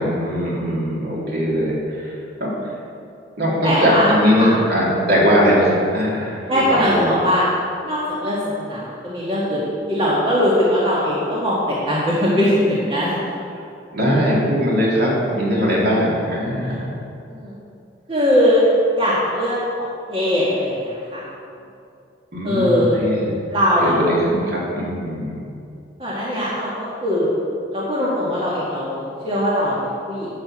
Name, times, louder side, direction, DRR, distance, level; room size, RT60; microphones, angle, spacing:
voice 1, 0.0-2.5 3.4-7.1 13.9-16.9 22.3-23.3 23.8-25.4, equal, 55° right, -5 dB, 3.2 m, -20 dB
voice 2, 3.6-4.1 4.4-4.5 6.5-7.4 7.8-9.6 9.9-13.3 17.3-17.5 18.1-18.7 18.9-21.2 22.4-23.0 23.5-24.0 26.0-27.3 27.7-29.7 30.1-30.3, equal, 30° right, -7 dB, 2.0 m, -20 dB
12.0 x 6.3 x 7.5 m, 2.5 s
head